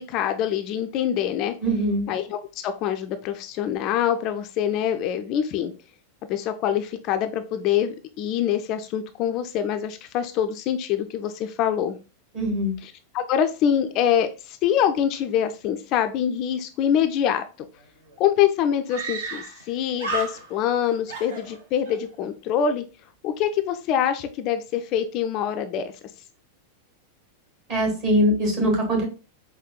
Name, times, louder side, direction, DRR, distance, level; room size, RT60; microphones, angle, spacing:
voice 1, 0.0-1.5 2.1-5.7 6.3-12.0 12.8-17.4 18.2-22.8 23.2-25.9, left 9 dB, 40° left, 8 dB, 0.3 m, -25 dB
voice 2, 1.6-2.1 12.3-12.8 27.7-29.0, equal, 40° right, 1 dB, 1.4 m, -22 dB
Screaming, 17.8-17.9 18.1-18.2 18.9-19.7 20.0-20.8 21.1-22.0, right 3 dB, 60° right, 0.8 m, -32 dB
5.0 x 2.1 x 2.3 m, 0.32 s
figure-of-eight pair, 90°, 0 cm